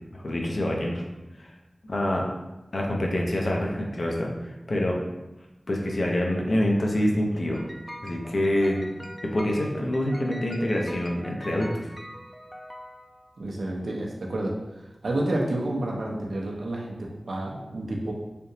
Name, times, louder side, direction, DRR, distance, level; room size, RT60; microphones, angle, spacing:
voice 1, 0.1-1.0 1.4-1.5 1.9-2.3 2.7-5.0 5.7-7.6 8.0-8.8 9.2-11.9, left 1 dB, 65° left, 0 dB, 0.6 m, -26 dB
sound 1, 7.5-13.5, equal, 5° left, 0.3 m, -43 dB
voice 2, 13.4-14.5 15.0-18.1, right 1 dB, 90° right, -2 dB, 0.6 m, -29 dB
3.4 x 2.8 x 2.8 m, 1.0 s
wide cardioid pair, 65°, 0 cm